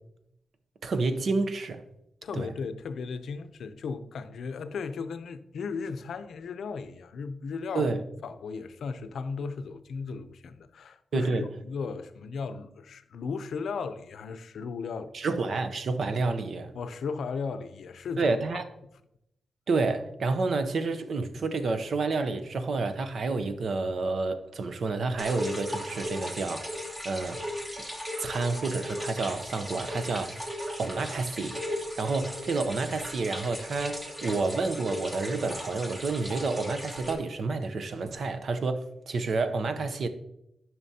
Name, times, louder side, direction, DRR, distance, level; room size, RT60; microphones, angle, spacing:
voice 1, 0.8-1.8 2.3-2.5 7.7-8.0 11.1-11.5 15.1-16.7 18.2-18.6 19.7-26.8 27.0-27.4 28.2-30.4 30.8-40.1, right 3 dB, 60° right, 0.7 m, -29 dB
voice 2, 2.2-7.9 8.2-15.3 16.7-18.6, left 5 dB, 80° left, 0.5 m, -36 dB
sound 1, 25.2-37.1, equal, 10° right, 1.2 m, -37 dB
11.0 x 5.9 x 2.8 m
wide cardioid pair, 140°, 0 cm